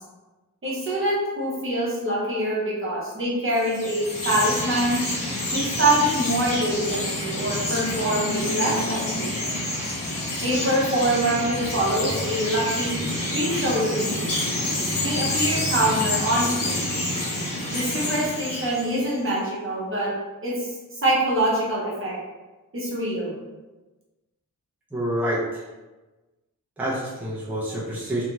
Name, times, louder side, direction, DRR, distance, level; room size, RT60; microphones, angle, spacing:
voice 1, 0.6-5.0 5.5-9.6 10.4-13.0 13.3-14.2 15.0-17.1 17.7-20.1 20.4-20.7 21.0-22.1 22.7-23.3, right 1 dB, 40° right, -6 dB, 0.9 m, -25 dB
Chirp tweet, 3.5-19.2, left 1 dB, 90° left, 1.0 m, -28 dB
voice 2, 24.9-25.6 26.8-28.2, right 1 dB, 5° right, -9 dB, 0.6 m, -27 dB
2.7 x 2.4 x 3.0 m, 1.2 s
wide cardioid pair, 165°, 33 cm